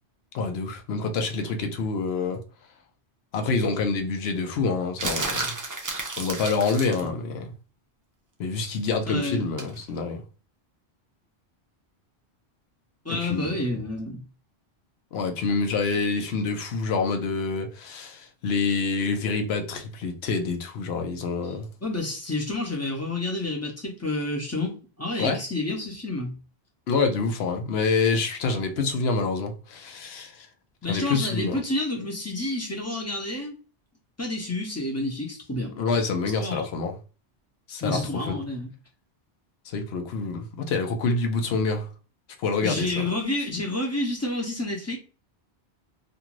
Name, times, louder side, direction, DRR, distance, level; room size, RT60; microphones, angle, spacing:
voice 1, 0.3-2.4 3.3-5.5 6.2-7.5 8.4-10.2 13.1-13.5 15.1-21.7 25.2-25.4 26.9-30.5 30.9-31.6 35.8-37.0 37.7-38.4 39.7-41.9 42.4-43.1, left 4 dB, 75° left, 0.8 m, -27 dB
sound 1, 5.0-7.1 9.6-9.8, right 2 dB, 30° right, 0.3 m, -31 dB
voice 2, 9.1-9.5 13.0-14.2 21.4-21.6 21.8-26.3 30.8-33.6 34.2-35.8 36.4-36.7 37.8-38.7 42.6-45.0, left 2 dB, 20° left, 0.6 m, -29 dB
2.6 x 2.4 x 2.9 m
omnidirectional pair, 1.1 m